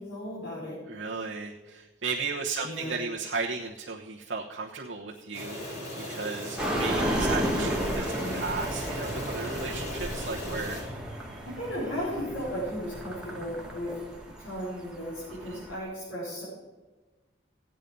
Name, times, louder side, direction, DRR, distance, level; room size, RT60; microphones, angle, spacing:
voice 1, 0.0-0.7 2.6-2.9 7.6-8.4 11.4-13.9 14.4-16.4, equal, 80° left, -9 dB, 5.6 m, -35 dB
voice 2, 0.9-8.1 8.3-10.8 15.5-15.6, right 4 dB, 85° right, -3 dB, 1.1 m, -35 dB
sound 1, 5.3-10.8, left 1 dB, 55° left, 5.5 m, -37 dB
sound 2, 6.6-15.8, equal, 5° right, 2.0 m, -33 dB
15.5 x 9.2 x 5.4 m, 1.2 s
head